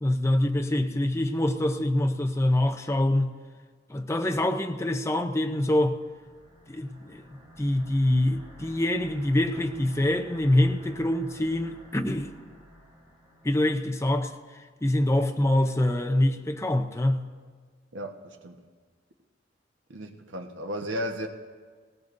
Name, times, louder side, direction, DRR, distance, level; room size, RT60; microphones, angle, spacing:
voice 1, 0.0-3.3 3.9-6.0 6.7-7.2 7.6-12.3 13.4-14.3 14.8-17.3, left 1 dB, 15° left, 0.6 m, -25 dB
sound 1, 5.9-14.2, equal, 30° right, 5.3 m, -49 dB
voice 2, 17.9-18.6 19.9-21.3, equal, 85° right, 1.2 m, -34 dB
19.0 x 18.5 x 2.6 m
head